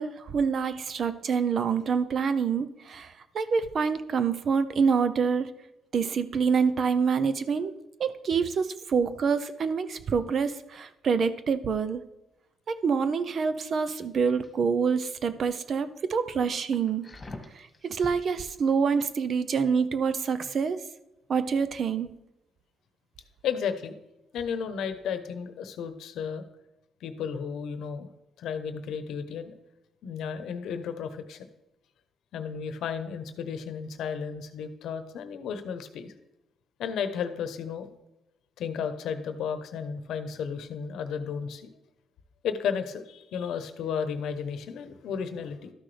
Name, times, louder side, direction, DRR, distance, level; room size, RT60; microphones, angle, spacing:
voice 1, 0.0-5.5 5.9-7.7 8.0-12.0 12.7-17.1 17.5-20.8 21.3-22.1, right 6 dB, 55° right, 13 dB, 0.6 m, -26 dB
sound 1, 13.8-14.7 15.1-15.4 15.9-16.0 16.4-18.2 18.6-18.8, left 2 dB, 20° left, 1.6 m, -45 dB
voice 2, 23.4-23.9 24.3-26.4 27.0-28.1 28.4-29.6 30.0-31.5 32.3-36.1 36.8-37.9 38.6-41.7 42.4-45.7, left 7 dB, 80° left, 10 dB, 0.9 m, -33 dB
12.5 x 6.0 x 3.3 m, 0.93 s
cardioid pair, 90°, 0 cm